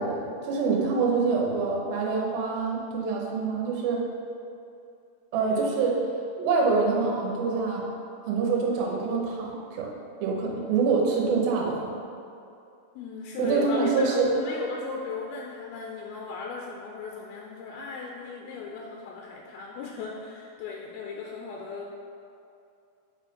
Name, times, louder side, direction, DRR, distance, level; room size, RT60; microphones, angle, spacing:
voice 1, 0.0-4.0 5.3-6.0 6.4-7.8 8.3-9.9 10.2-11.9 13.4-14.3, right 4 dB, 75° right, -2 dB, 2.7 m, -25 dB
voice 2, 5.3-5.8 13.0-21.9, left 5 dB, 90° left, 0 dB, 2.5 m, -36 dB
7.3 x 4.0 x 5.1 m, 2.5 s
omnidirectional pair, 4.3 m